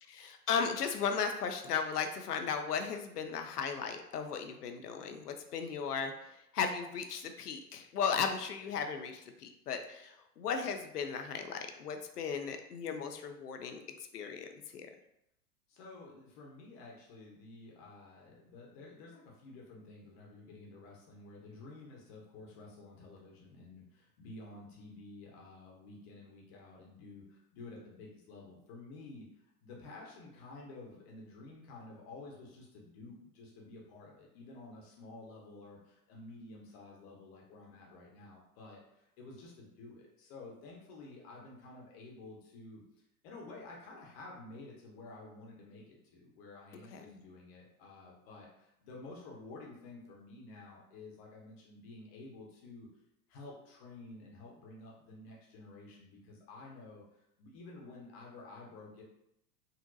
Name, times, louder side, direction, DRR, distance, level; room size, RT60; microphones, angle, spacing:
voice 1, 0.1-6.1 6.5-13.8 14.1-14.5 14.7-14.9 46.9-47.2, left 6 dB, 80° left, 6 dB, 0.5 m, -36 dB
voice 2, 15.7-42.8 43.2-52.9 53.3-57.0 57.4-59.0, left 2 dB, 40° left, -2 dB, 0.9 m, -51 dB
3.8 x 2.1 x 2.6 m, 0.81 s
figure-of-eight pair, 95°, 46 cm